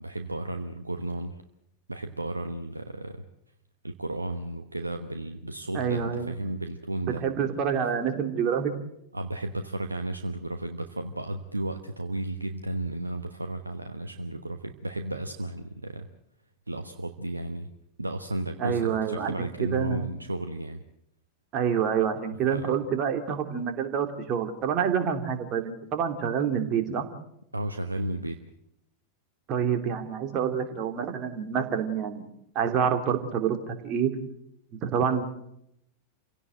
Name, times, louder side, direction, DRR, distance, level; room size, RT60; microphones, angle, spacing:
voice 1, 0.0-1.4 1.9-3.2 3.8-7.2 7.8-7.9 9.1-16.1 16.7-17.7 18.0-20.8 22.5-22.8 27.5-28.4, right 1 dB, 80° right, 7 dB, 1.1 m, -33 dB
voice 2, 5.7-6.3 7.2-8.7 18.6-20.0 21.5-27.1 29.5-32.3 32.5-34.1 34.8-35.2, right 7 dB, 35° right, 6 dB, 2.9 m, -27 dB
27.5 x 17.0 x 7.9 m, 0.78 s
figure-of-eight pair, 90°, 0 cm